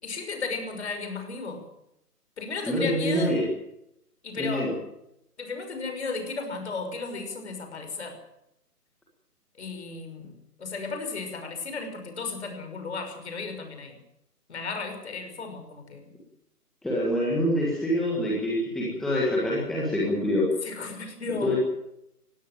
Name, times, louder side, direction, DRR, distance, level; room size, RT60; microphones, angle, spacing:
voice 1, 0.0-1.7 2.4-3.4 4.2-4.8 5.4-8.2 9.6-10.3 10.6-14.0 14.5-16.1 20.6-21.6, left 4 dB, 45° left, 6 dB, 5.9 m, -34 dB
voice 2, 2.7-3.4 4.4-4.7 16.8-20.5 21.4-21.6, equal, ahead, -5 dB, 1.5 m, -25 dB
20.0 x 16.5 x 8.9 m, 0.81 s
figure-of-eight pair, 155°, 47 cm